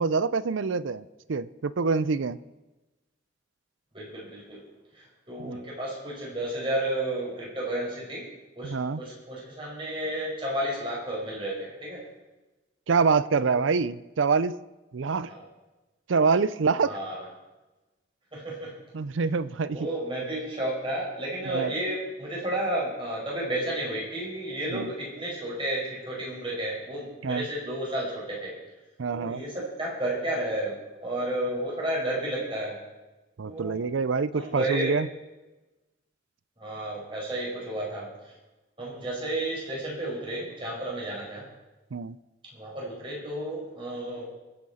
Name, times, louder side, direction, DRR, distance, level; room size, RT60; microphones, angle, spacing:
voice 1, 0.0-2.4 5.4-5.6 8.6-9.0 12.9-14.6 14.9-15.3 16.1-17.0 18.9-19.8 21.5-21.7 24.7-24.9 27.2-27.5 29.0-29.4 33.4-35.1 41.9-42.2, right 5 dB, 80° right, 16 dB, 0.5 m, -26 dB
voice 2, 3.9-4.6 4.9-8.2 8.6-8.7 9.0-12.0 15.3-15.4 16.8-17.3 18.3-18.7 19.7-28.5 29.1-32.8 33.4-33.9 34.3-35.0 36.6-38.3 38.8-41.4 42.5-44.3, right 1 dB, 25° right, -4 dB, 5.3 m, -32 dB
24.0 x 8.7 x 4.3 m, 1.1 s
head